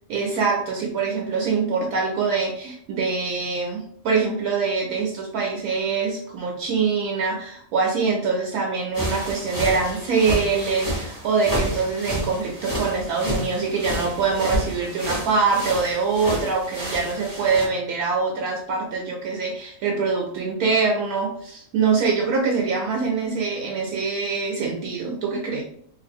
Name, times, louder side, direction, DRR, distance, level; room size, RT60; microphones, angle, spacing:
voice 1, 0.1-25.6, right 4 dB, 70° right, 0 dB, 1.0 m, -24 dB
sound 1, 8.9-17.7, equal, 15° left, 0.7 m, -30 dB
2.7 x 2.5 x 4.2 m, 0.67 s
omnidirectional pair, 1.7 m